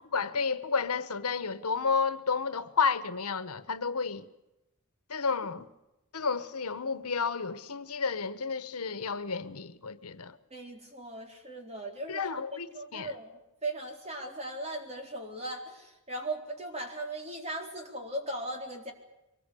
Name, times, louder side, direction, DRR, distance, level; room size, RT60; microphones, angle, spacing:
voice 1, 0.0-4.3 5.1-5.7 6.1-10.4 12.1-12.7 12.9-13.1, left 5 dB, 85° left, 1.2 m, -31 dB
voice 2, 10.5-12.4 12.7-13.3 13.6-18.9, right 1 dB, 30° right, 4.0 m, -38 dB
23.5 x 20.5 x 8.4 m
head